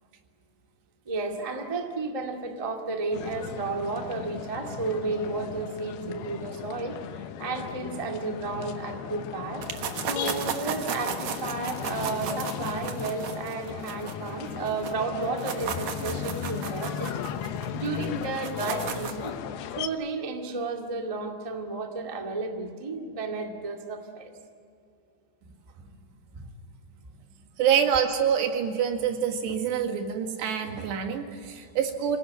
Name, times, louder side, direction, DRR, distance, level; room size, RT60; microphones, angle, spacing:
voice 1, 1.0-9.7 10.1-19.3 19.8-24.3, right 3 dB, 35° right, 2 dB, 0.5 m, -33 dB
sound 1, 3.1-19.9, left 8 dB, 75° left, 2.8 m, -36 dB
sound 2, 9.6-14.9 15.2-19.3, right 7 dB, 60° right, 2.0 m, -35 dB
voice 2, 27.6-32.2, right 8 dB, 85° right, 4 dB, 4.1 m, -26 dB
27.5 x 18.0 x 9.7 m, 2.4 s
omnidirectional pair, 4.8 m